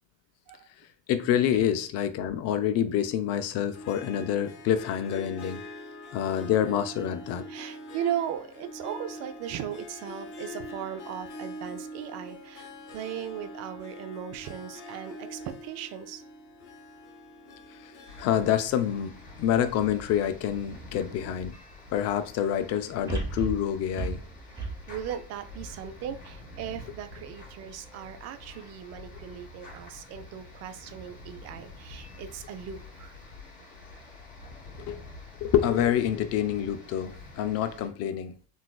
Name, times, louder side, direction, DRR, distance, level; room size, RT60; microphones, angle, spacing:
voice 1, 1.1-5.6 6.1-7.5 17.8-17.9 18.2-21.5 21.9-24.2 34.8-35.0 35.4-38.3, left 10 dB, 50° left, 0.5 m, -27 dB
Harp, 3.7-20.2, left 1 dB, 65° left, 1.6 m, -44 dB
voice 2, 7.5-16.2 24.5-33.1, right 9 dB, 50° right, 0.5 m, -37 dB
sound 1, 18.1-37.9, left 2 dB, 25° left, 1.4 m, -47 dB
sound 2, 23.1-26.4 26.9-27.0, right 3 dB, 10° right, 0.8 m, -35 dB
3.9 x 2.5 x 2.3 m
cardioid pair, 125°, 33 cm